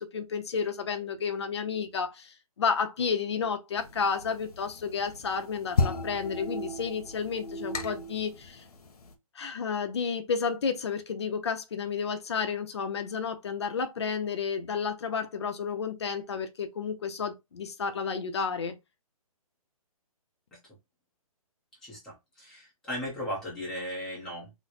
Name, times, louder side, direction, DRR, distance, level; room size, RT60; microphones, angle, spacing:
voice 1, 0.0-8.6 9.4-18.7, left 6 dB, 45° left, 0.6 m, -31 dB
sound 1, 3.8-9.1, left 3 dB, 85° left, 0.8 m, -33 dB
voice 2, 21.8-24.5, equal, 5° left, 0.6 m, -37 dB
3.1 x 2.0 x 4.0 m
hypercardioid pair, 175°, 19 cm